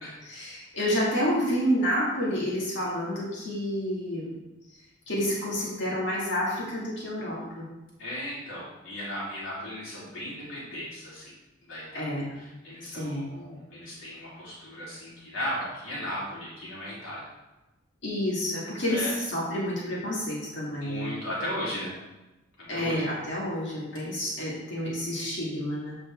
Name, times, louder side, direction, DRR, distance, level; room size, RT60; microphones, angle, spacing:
voice 1, 0.2-4.3 5.1-7.7 11.9-12.3 12.9-13.3 18.0-21.2 22.7-26.0, equal, 60° left, -6 dB, 2.3 m, -29 dB
voice 2, 8.0-11.3 11.6-12.1 12.3-17.2 18.9-19.1 20.8-21.9 22.7-23.0, equal, 90° left, -8 dB, 3.0 m, -36 dB
8.1 x 5.1 x 4.5 m, 1.0 s
head